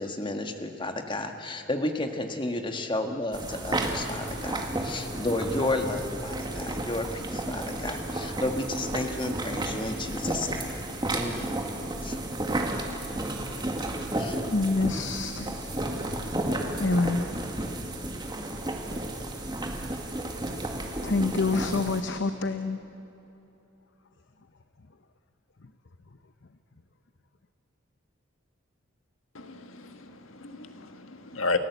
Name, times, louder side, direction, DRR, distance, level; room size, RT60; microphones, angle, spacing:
voice 1, 0.0-10.8 11.1-11.6 12.0-12.2 14.2-14.5, left 2 dB, 25° left, 5 dB, 1.5 m, -32 dB
sound 1, 3.3-22.0, right 1 dB, 20° right, 2.0 m, -32 dB
voice 2, 14.2-15.6 16.8-17.3 18.1-18.2 21.0-22.8, left 3 dB, 60° left, 8 dB, 0.8 m, -27 dB
voice 3, 29.3-31.6, left 3 dB, 80° left, 7 dB, 1.6 m, -33 dB
29.5 x 16.0 x 8.1 m, 3.0 s
head